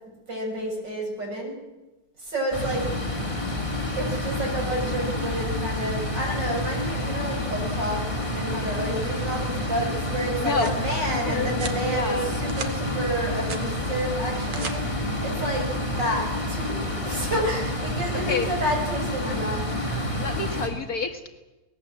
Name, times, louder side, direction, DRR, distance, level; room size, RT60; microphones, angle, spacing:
voice 1, 0.3-1.6 2.2-2.9 4.0-8.0 8.3-19.6 20.0-20.1, right 1 dB, 60° right, 0 dB, 7.8 m, -30 dB
sound 1, 2.5-20.7, left 1 dB, 15° left, 3.7 m, -29 dB
voice 2, 10.4-10.8 11.1-12.4 18.1-18.6 20.2-21.3, left 4 dB, 50° left, 6 dB, 1.7 m, -29 dB
sound 2, 10.5-10.8 11.5-11.8 12.3-12.7 13.1-13.7 14.3-14.8, right 5 dB, 80° right, 2.5 m, -37 dB
24.0 x 19.5 x 7.5 m, 1.1 s
omnidirectional pair, 2.2 m